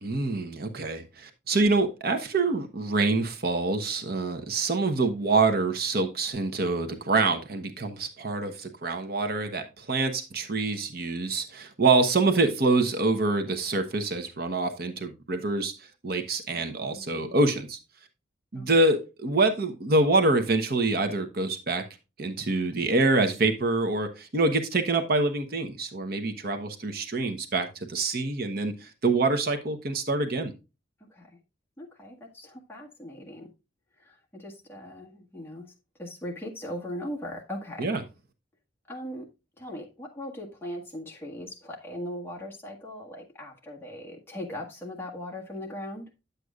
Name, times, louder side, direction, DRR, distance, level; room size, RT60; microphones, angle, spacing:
voice 1, 0.0-17.8 18.5-21.8 22.2-30.5 37.8-38.0, right 3 dB, 50° right, 1.0 m, -26 dB
voice 2, 16.5-17.4 18.5-18.7 31.0-31.3 31.8-33.5 34.0-35.7 36.0-37.9 38.9-39.3 39.6-46.1, left 1 dB, 10° left, 1.7 m, -39 dB
9.8 x 7.9 x 2.4 m
head